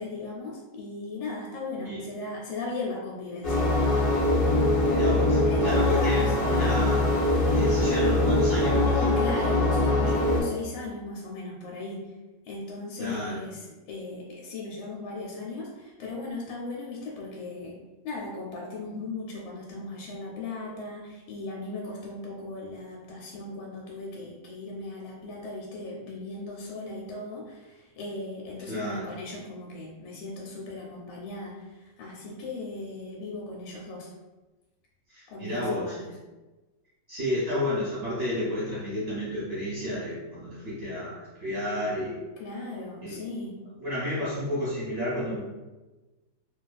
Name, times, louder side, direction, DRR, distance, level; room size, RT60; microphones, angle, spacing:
voice 1, 0.0-3.7 5.5-6.3 8.9-12.0 12.4-17.7 18.0-34.1 35.3-36.1 42.4-43.6, left 3 dB, 90° left, -3 dB, 1.3 m, -37 dB
sound 1, 3.4-10.4, left 2 dB, 60° left, 0.6 m, -23 dB
voice 2, 4.9-9.2 13.0-13.4 28.7-29.1 35.1-36.2 37.1-42.2 43.0-43.2 43.8-45.4, left 1 dB, 50° right, -9 dB, 0.8 m, -31 dB
2.9 x 2.3 x 2.3 m, 1.2 s
omnidirectional pair, 2.0 m